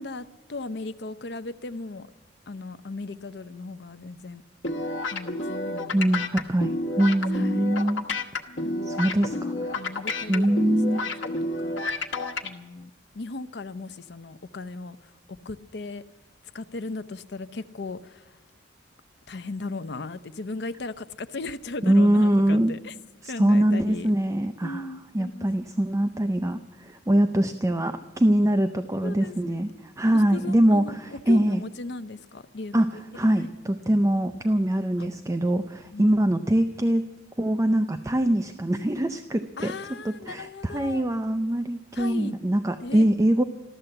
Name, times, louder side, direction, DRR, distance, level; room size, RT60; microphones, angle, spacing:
voice 1, 0.0-2.1 2.5-4.4 5.1-6.2 7.3-7.7 8.6-11.1 11.4-11.8 12.4-16.0 16.5-18.4 19.3-22.9 23.3-24.1 24.6-25.7 29.0-29.8 30.1-32.8 33.2-34.0 35.0-35.1 35.9-36.1 39.6-41.1 41.9-42.4 42.8-43.1, left 3 dB, 60° left, 13 dB, 0.6 m, -37 dB
sound 1, 4.6-12.5, left 2 dB, 80° left, 1.2 m, -30 dB
voice 2, 5.9-8.1 8.8-9.7 10.3-11.1 21.8-22.7 23.2-24.9 25.1-31.6 32.7-37.0 37.4-39.7 40.0-43.4, right 1 dB, 15° right, 8 dB, 0.5 m, -23 dB
13.5 x 13.0 x 7.8 m, 1.2 s
head